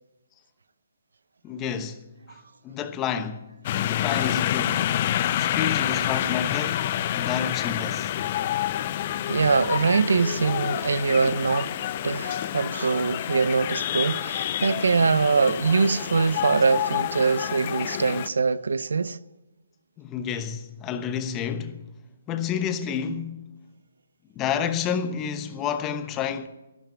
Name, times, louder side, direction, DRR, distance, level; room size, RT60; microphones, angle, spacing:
voice 1, 1.4-2.0 2.6-3.5 3.7-4.9 5.4-8.1 20.0-21.8 22.3-23.5 24.3-26.5, left 8 dB, 20° left, 1.0 m, -30 dB
sound 1, 3.6-18.3, left 11 dB, 35° left, 0.6 m, -28 dB
voice 2, 9.3-11.7 12.0-19.2, right 4 dB, 80° right, 0.7 m, -23 dB
13.5 x 12.0 x 8.7 m
hypercardioid pair, 160°, 0 cm